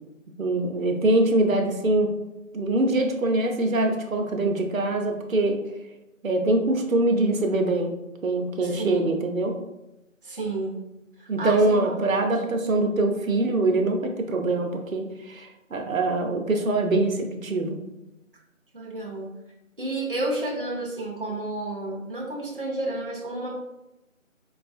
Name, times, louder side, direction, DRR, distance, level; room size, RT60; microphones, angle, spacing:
voice 1, 0.4-2.1 2.5-5.6 6.2-7.9 8.2-9.6 11.3-17.8, right 2 dB, 75° right, 3 dB, 0.7 m, -23 dB
voice 2, 8.6-9.1 10.2-10.8 11.2-12.0 18.7-19.3 19.8-23.6, right 2 dB, 40° right, -2 dB, 0.6 m, -31 dB
4.6 x 2.3 x 2.6 m, 0.94 s
figure-of-eight pair, 175°, 40 cm